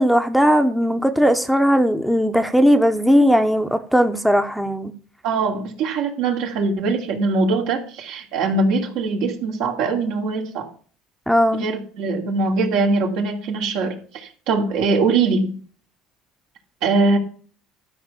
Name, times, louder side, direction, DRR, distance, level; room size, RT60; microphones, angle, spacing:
voice 1, 0.0-4.9 11.3-11.7, equal, ahead, 0.8 m, -18 dB
voice 2, 5.2-10.7 11.5-15.6 16.8-17.2, right 3 dB, 75° right, 2.8 m, -22 dB
12.5 x 5.3 x 6.8 m
cardioid pair, 120°, 0 cm